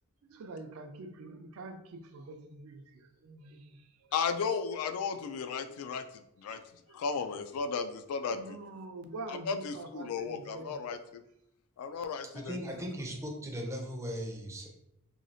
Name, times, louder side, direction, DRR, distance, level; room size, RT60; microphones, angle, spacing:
voice 1, 0.3-4.1 5.3-5.5 6.5-6.6 6.9-7.0 8.2-10.8 12.2-12.3, right 2 dB, 75° right, 6 dB, 0.4 m, -46 dB
voice 2, 4.1-6.6 6.9-8.6 9.3-11.2 11.8-12.6, left 5 dB, 85° left, 12 dB, 0.3 m, -35 dB
voice 3, 12.3-14.7, equal, 15° right, 1 dB, 0.4 m, -38 dB
3.0 x 2.3 x 2.6 m, 0.81 s
head